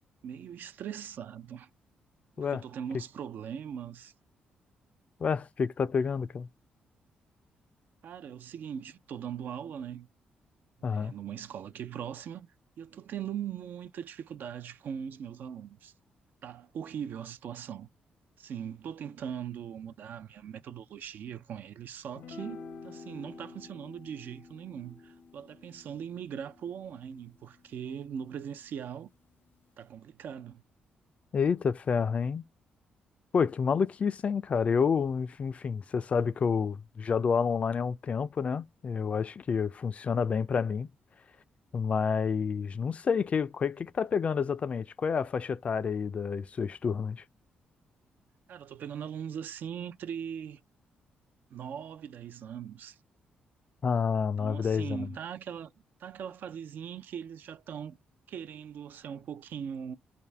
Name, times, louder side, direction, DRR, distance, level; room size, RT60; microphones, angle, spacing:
voice 1, 0.2-1.7 2.4-4.1 8.0-10.1 10.8-12.5 12.8-15.9 16.4-17.9 18.4-29.1 29.8-30.6 48.5-50.6 51.5-53.0 54.4-55.7 56.0-58.0 58.3-60.0, right 8 dB, 65° right, 0.4 m, -40 dB
voice 2, 5.2-6.5 10.8-11.2 31.3-32.4 33.3-40.9 41.7-47.2 53.8-55.1, left 6 dB, 40° left, 0.3 m, -29 dB
sound 1, 22.2-28.7, left 4 dB, 75° left, 0.6 m, -49 dB
3.4 x 2.6 x 3.3 m
cardioid pair, 115°, 3 cm